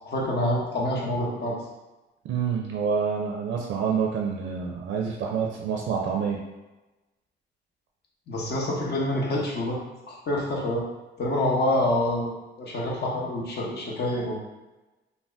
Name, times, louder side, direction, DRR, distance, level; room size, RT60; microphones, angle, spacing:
voice 1, 0.0-1.6 8.3-9.8 10.1-10.8 11.2-14.4, left 1 dB, 55° left, -2 dB, 0.8 m, -27 dB
voice 2, 2.3-6.4, right 6 dB, 70° right, 0 dB, 0.4 m, -27 dB
2.6 x 2.1 x 3.3 m, 1.1 s
cardioid pair, 90°, 20 cm